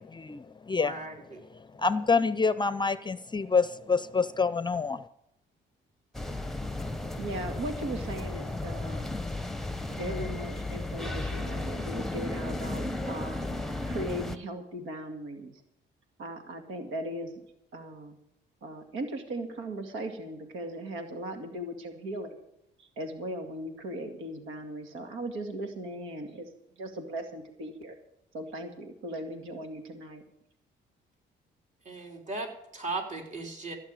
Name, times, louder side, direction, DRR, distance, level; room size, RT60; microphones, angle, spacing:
voice 1, 0.8-1.4 31.9-33.8, right 3 dB, 40° right, 2 dB, 4.1 m, -37 dB
voice 2, 1.8-5.0, left 4 dB, 20° left, 15 dB, 0.6 m, -26 dB
sound 1, 6.1-14.4, left 2 dB, ahead, 1.0 m, -34 dB
voice 3, 7.2-9.1 9.9-13.4 13.9-15.6 16.2-17.4 17.7-18.2 18.6-22.4 22.8-26.5 26.8-28.0 28.3-30.2, right 1 dB, 85° right, 5 dB, 2.2 m, -38 dB
15.5 x 6.3 x 9.0 m, 0.82 s
cardioid pair, 90°, 20 cm